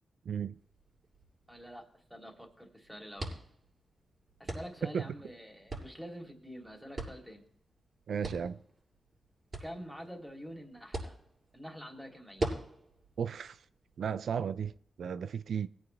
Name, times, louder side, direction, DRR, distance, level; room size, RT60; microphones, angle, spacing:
voice 1, 0.3-0.6 4.8-5.1 8.1-8.6 13.2-13.6 14.0-15.7, right 7 dB, 80° right, 0.4 m, -34 dB
sound 1, 0.5-14.7, right 2 dB, 45° right, 6.9 m, -44 dB
voice 2, 1.5-3.3 4.4-7.4 9.6-11.2 11.5-12.5, equal, ahead, 3.2 m, -46 dB
19.0 x 9.0 x 3.4 m
cardioid pair, 65°, 0 cm